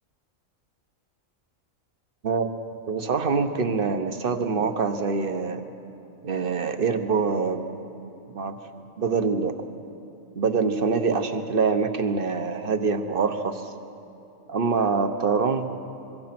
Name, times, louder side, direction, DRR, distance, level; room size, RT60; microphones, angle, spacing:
voice 1, 2.9-5.6 6.2-7.7 8.3-8.6 9.0-9.5 10.3-13.7 14.5-15.7, right 5 dB, 45° right, 8 dB, 1.3 m, -25 dB
25.5 x 23.0 x 6.0 m, 2.9 s
omnidirectional pair, 1.4 m